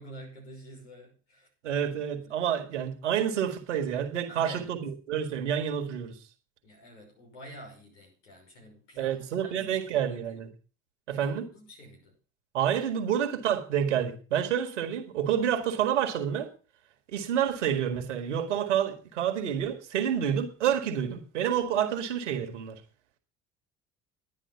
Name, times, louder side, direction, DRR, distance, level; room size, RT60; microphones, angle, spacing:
voice 1, 0.0-1.5 2.2-2.4 4.3-4.7 6.6-10.4 11.1-12.1, right 1 dB, 85° left, 5.7 m, -48 dB
voice 2, 1.6-6.2 9.0-10.5 11.1-11.5 12.5-16.5 17.1-22.8, right 9 dB, 85° right, 1.9 m, -28 dB
11.0 x 10.0 x 5.8 m
hypercardioid pair, 60°, 35 cm